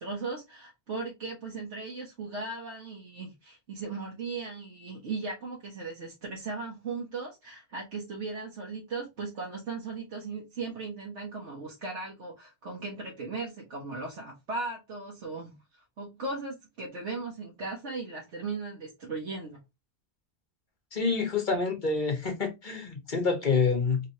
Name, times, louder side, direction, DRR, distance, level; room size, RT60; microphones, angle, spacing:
voice 1, 0.0-15.6 16.0-19.6, right 3 dB, 80° right, 1.4 m, -37 dB
voice 2, 20.9-24.0, left 4 dB, 45° left, 1.3 m, -27 dB
3.7 x 3.4 x 2.9 m
omnidirectional pair, 1.2 m